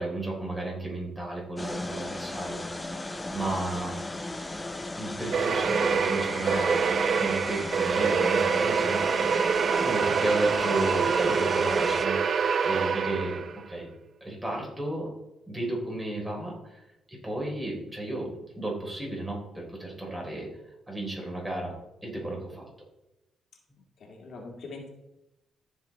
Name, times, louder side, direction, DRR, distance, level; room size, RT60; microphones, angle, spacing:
voice 1, 0.0-3.9 5.0-9.0 9.8-13.9 14.2-15.1 15.5-16.8 17.1-18.3 18.6-20.5 20.9-21.7 22.0-22.7, right 2 dB, 15° right, -2 dB, 3.7 m, -33 dB
sound 1, 1.6-12.1, left 2 dB, 15° left, 0.6 m, -36 dB
sound 2, 5.3-13.6, right 6 dB, 50° right, 0.5 m, -25 dB
voice 2, 9.1-9.5 22.1-22.4 24.0-24.9, left 3 dB, 60° left, 1 dB, 2.0 m, -43 dB
14.0 x 5.5 x 4.1 m, 0.94 s
cardioid pair, 105°, 0 cm